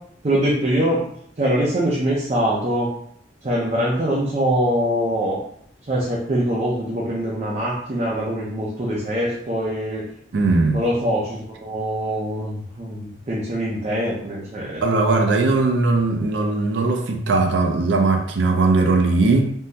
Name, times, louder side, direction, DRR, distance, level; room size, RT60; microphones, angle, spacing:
voice 1, 0.2-1.0 1.4-2.9 3.4-5.4 5.9-10.0 10.7-14.8, equal, 40° right, 0.5 m, -23 dB
voice 2, 10.3-10.8 14.8-19.5, right 3 dB, 90° right, 0.5 m, -19 dB
3.5 x 2.1 x 2.7 m
head